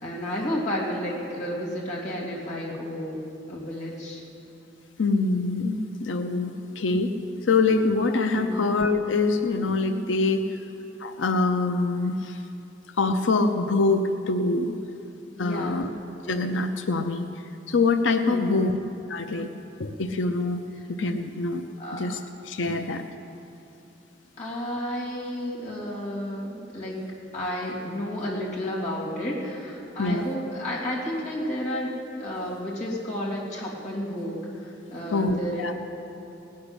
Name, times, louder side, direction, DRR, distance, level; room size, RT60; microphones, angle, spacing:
voice 1, 0.0-3.2 3.5-4.2 8.3-8.6 15.4-15.9 18.3-18.6 20.7-20.8 21.8-22.1 22.7-22.9 24.4-27.0 27.3-31.9 32.2-35.7, equal, 40° left, -5 dB, 3.1 m, -32 dB
voice 2, 5.0-7.1 7.4-10.6 11.0-12.4 13.0-14.7 15.4-15.9 16.2-17.3 17.7-18.7 19.1-19.5 19.8-20.6 20.9-21.7 21.9-23.0 30.0-30.3 35.1-35.7, left 3 dB, 80° left, 6 dB, 0.7 m, -24 dB
18.5 x 6.5 x 10.0 m, 2.8 s
head